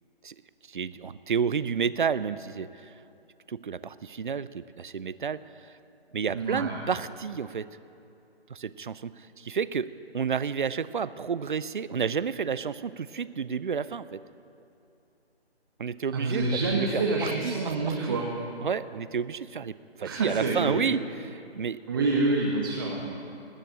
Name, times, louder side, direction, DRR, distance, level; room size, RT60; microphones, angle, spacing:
voice 1, 0.7-2.9 3.5-5.7 6.1-7.7 8.5-9.9 10.1-14.2 15.8-18.2 18.6-22.2, right 6 dB, 50° right, 16 dB, 0.5 m, -31 dB
voice 2, 6.3-6.8 16.1-18.3 20.0-20.9 21.9-23.1, right 3 dB, 20° right, -3 dB, 0.9 m, -27 dB
19.5 x 6.6 x 8.8 m, 2.6 s
figure-of-eight pair, 155°, 32 cm